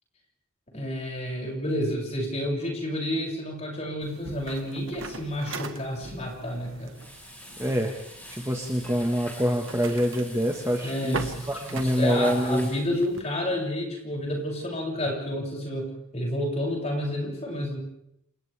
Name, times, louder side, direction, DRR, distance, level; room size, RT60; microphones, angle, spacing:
voice 1, 0.7-6.9 10.8-17.8, left 1 dB, 30° left, -2 dB, 7.1 m, -30 dB
sound 1, 4.0-13.2, right 3 dB, 65° right, 1.6 m, -41 dB
Frying (food), 6.9-12.8, equal, 10° left, 5.5 m, -45 dB
voice 2, 7.6-7.9 8.3-12.7, equal, 15° right, 2 dB, 1.6 m, -26 dB
29.5 x 27.5 x 3.5 m, 0.77 s
head